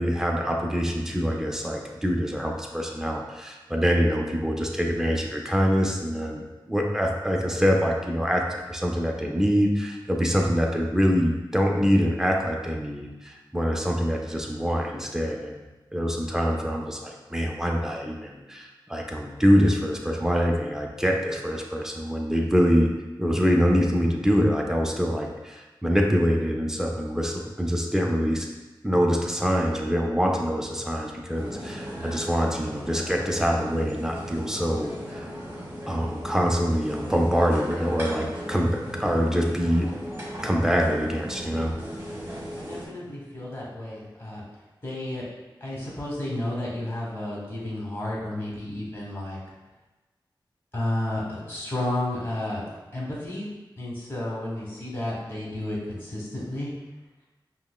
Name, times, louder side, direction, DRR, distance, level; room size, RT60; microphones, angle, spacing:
voice 1, 0.0-8.4 8.7-15.6 15.9-22.9 23.2-28.5 28.8-35.0 35.9-39.9 40.4-41.7, equal, 5° right, 0 dB, 0.5 m, -24 dB
sound 1, 31.3-42.9, equal, 30° right, 1.2 m, -37 dB
voice 2, 42.6-44.4 44.8-45.3 45.6-49.4 50.7-52.6 52.9-53.5 53.8-56.7, left 1 dB, 25° left, -5 dB, 1.2 m, -32 dB
5.3 x 2.0 x 2.2 m, 1.1 s
cardioid pair, 45°, 9 cm